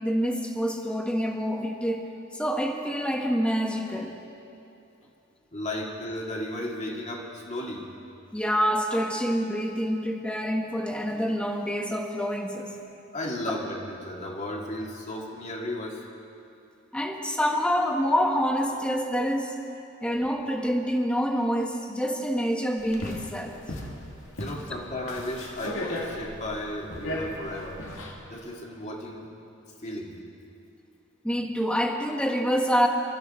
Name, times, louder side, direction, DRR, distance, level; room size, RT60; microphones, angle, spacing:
voice 1, 0.0-2.0 2.3-4.2 8.3-12.7 16.9-19.5 20.0-23.5 31.2-32.9, equal, 5° left, 2 dB, 1.2 m, -27 dB
voice 2, 5.5-7.8 13.1-16.0 24.4-27.8 28.3-29.3 29.8-30.1, left 1 dB, 35° left, 0 dB, 2.0 m, -34 dB
sound 1, 22.8-28.1, left 1 dB, 75° left, 1.9 m, -36 dB
25.0 x 13.0 x 4.3 m, 2.8 s
head